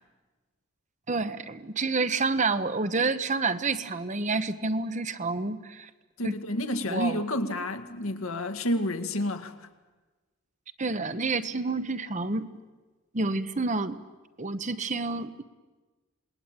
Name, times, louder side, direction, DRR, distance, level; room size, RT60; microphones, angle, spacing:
voice 1, 1.1-5.9 6.2-6.4 6.9-7.2 10.8-12.5 13.1-14.0 14.4-15.4, right 3 dB, 35° right, 11 dB, 0.9 m, -29 dB
voice 2, 6.2-9.5, left 1 dB, 75° left, 7 dB, 1.9 m, -30 dB
27.0 x 20.5 x 9.1 m, 1.2 s
head